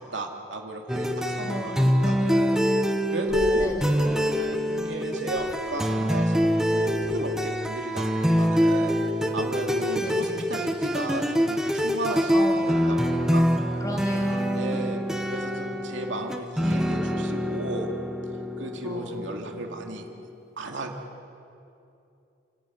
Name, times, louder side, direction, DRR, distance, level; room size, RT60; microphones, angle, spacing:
voice 1, 0.0-2.6 3.1-8.9 9.3-13.5 14.5-15.0 15.3-17.9 18.6-20.1 20.6-20.9, right 2 dB, 80° right, 2 dB, 2.5 m, -35 dB
sound 1, 0.9-20.3, equal, 5° right, 1.1 m, -25 dB
voice 2, 1.4-2.4 3.5-4.0 10.0-10.3 12.3-13.4 13.8-14.7 18.8-19.6, equal, 20° left, 0 dB, 3.0 m, -36 dB
sound 2, 3.2-3.6 4.7-4.9 5.2-5.7 6.8-7.5, equal, 60° right, 3.7 m, -41 dB
29.5 x 15.5 x 9.5 m, 2.7 s
head